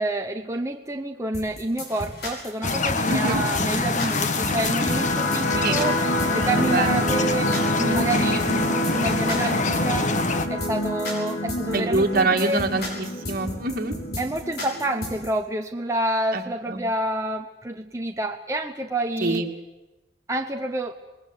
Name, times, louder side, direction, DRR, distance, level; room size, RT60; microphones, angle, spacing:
voice 1, 0.0-6.0 6.3-10.2 10.5-12.7 14.2-19.5 20.3-21.0, right 1 dB, 15° right, 3 dB, 1.0 m, -28 dB
sound 1, 1.3-15.3, left 1 dB, 65° left, 6.5 m, -34 dB
sound 2, 2.6-10.5, left 3 dB, 45° left, 1.3 m, -25 dB
voice 2, 3.1-3.4 5.6-5.8 6.6-7.0 11.7-13.9 16.3-16.8 19.2-19.5, right 3 dB, 55° right, 4 dB, 2.4 m, -25 dB
sound 3, 4.2-15.2, left 1 dB, 80° left, 2.4 m, -28 dB
26.5 x 20.5 x 8.2 m, 1.0 s
head